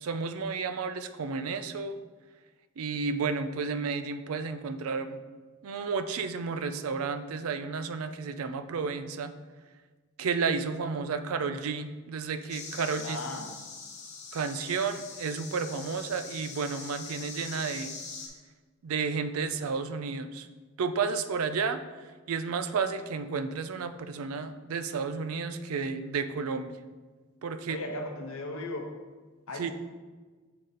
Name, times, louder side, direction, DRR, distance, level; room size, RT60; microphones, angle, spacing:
voice 1, 0.0-2.0 2.8-5.2 5.6-9.3 10.2-13.2 14.3-17.9 18.8-20.5 20.8-21.8 22.3-26.7 27.4-27.8 29.6-29.7, right 5 dB, 75° right, 10 dB, 0.4 m, -32 dB
sound 1, 12.5-18.3, left 4 dB, 30° left, 0.8 m, -43 dB
voice 2, 13.0-13.6 27.7-28.9 29.5-29.7, left 2 dB, 70° left, 3 dB, 0.8 m, -37 dB
6.5 x 3.8 x 4.1 m, 1.4 s
head